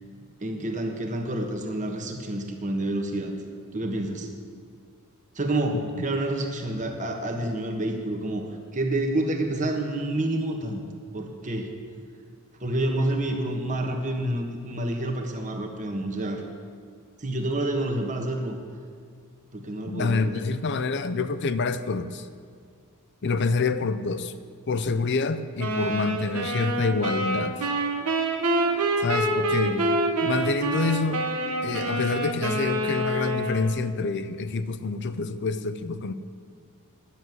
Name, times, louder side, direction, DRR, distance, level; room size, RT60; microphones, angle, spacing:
voice 1, 0.4-3.3 3.7-4.3 5.3-8.5 8.7-10.8 11.1-11.7 12.6-16.4 17.2-18.6 19.5-20.4 29.6-29.9, right 1 dB, 35° right, 3 dB, 1.3 m, -28 dB
voice 2, 19.9-22.3 23.2-24.3 24.7-27.8 29.0-29.9 30.2-31.3 31.6-36.1, left 4 dB, 50° left, 12 dB, 0.6 m, -27 dB
sound 1, 25.6-34.0, right 2 dB, 80° right, 1.3 m, -27 dB
10.0 x 7.5 x 9.4 m, 2.2 s
head